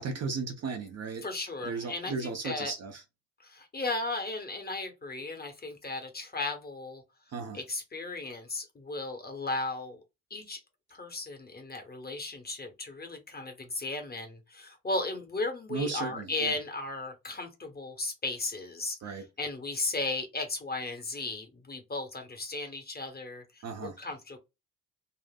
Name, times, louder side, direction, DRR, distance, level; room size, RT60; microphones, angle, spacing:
voice 1, 0.0-1.2 1.6-3.0 7.3-7.6 15.7-16.5 19.0-19.3 23.6-24.0, right 4 dB, 30° right, 0.7 m, -35 dB
voice 2, 1.2-2.7 3.4-7.0 7.5-10.0 10.3-10.6 10.9-19.0 19.4-24.4, left 2 dB, 20° left, 1.1 m, -35 dB
4.0 x 2.4 x 2.4 m
figure-of-eight pair, 50°, 50 cm